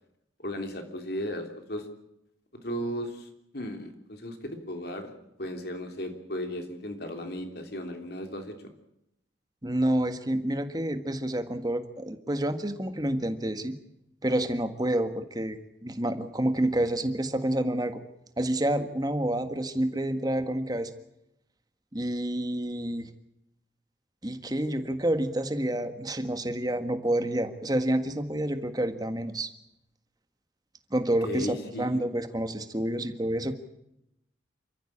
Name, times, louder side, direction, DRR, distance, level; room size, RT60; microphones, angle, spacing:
voice 1, 0.4-1.9 2.6-5.1 5.4-8.5 31.2-32.1, equal, 55° left, 5 dB, 3.2 m, -35 dB
voice 2, 9.6-13.8 14.2-15.6 15.8-18.0 18.4-20.9 21.9-23.1 24.2-29.5 30.9-33.5, right 1 dB, 20° right, 8 dB, 1.6 m, -28 dB
27.5 x 14.5 x 8.7 m, 0.84 s
head